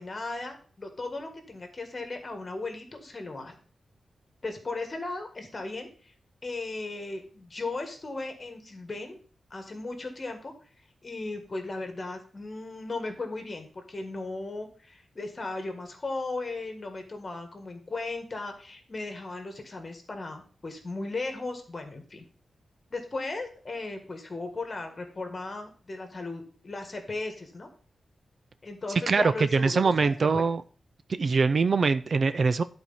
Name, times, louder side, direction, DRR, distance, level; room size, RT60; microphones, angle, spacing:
voice 1, 0.0-3.5 4.4-6.1 6.4-9.2 9.5-10.5 11.0-22.2 22.9-27.7 28.6-30.5, left 3 dB, 30° left, 5 dB, 1.7 m, -36 dB
voice 2, 29.1-30.6 31.1-32.6, right 4 dB, 45° right, 13 dB, 0.4 m, -23 dB
11.0 x 4.4 x 5.6 m, 0.42 s
wide cardioid pair, 150°, 0 cm